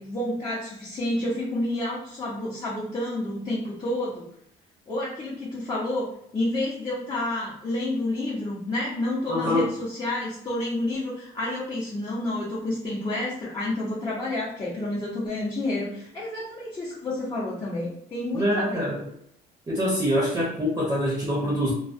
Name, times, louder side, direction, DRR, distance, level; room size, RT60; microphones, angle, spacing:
voice 1, 0.0-4.3 4.9-6.1 6.3-18.9, left 1 dB, 25° left, -7 dB, 0.7 m, -29 dB
voice 2, 9.3-9.7 18.3-19.0 19.7-21.7, equal, 20° right, -5 dB, 0.7 m, -25 dB
2.3 x 2.2 x 2.5 m, 0.71 s
cardioid pair, 110°, 17 cm